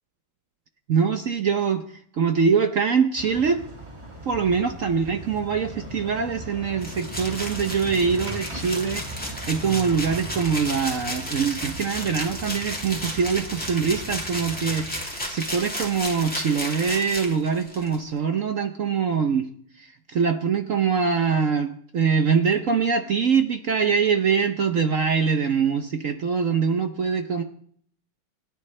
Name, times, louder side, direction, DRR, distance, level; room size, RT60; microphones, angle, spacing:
voice 1, 0.9-3.6 4.2-19.5 19.8-27.4, right 6 dB, 60° right, 7 dB, 0.8 m, -23 dB
sound 1, 3.2-15.1, right 1 dB, 15° right, 2.0 m, -39 dB
sound 2, 6.8-18.0, equal, 5° left, 2.4 m, -33 dB
29.0 x 10.5 x 3.3 m, 0.63 s
omnidirectional pair, 2.3 m